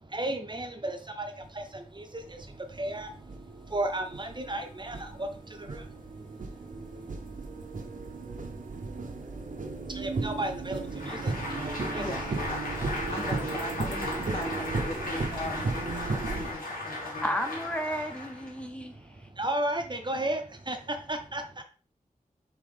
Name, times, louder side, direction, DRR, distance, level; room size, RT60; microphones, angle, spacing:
voice 1, 0.0-8.4 8.8-12.1 16.9-17.1 18.6-21.6, right 1 dB, 35° right, 0.7 m, -36 dB
sound 1, 1.4-1.5 2.2-16.5, right 3 dB, 75° right, 0.8 m, -36 dB
Applause, 10.8-18.6, left 2 dB, 85° left, 1.8 m, -37 dB
voice 2, 12.0-12.6 13.1-15.7 16.3-17.3, left 1 dB, 40° left, 0.7 m, -39 dB
voice 3, 17.2-18.9, equal, 10° left, 0.8 m, -32 dB
4.9 x 3.0 x 3.5 m
wide cardioid pair, 65°, 14 cm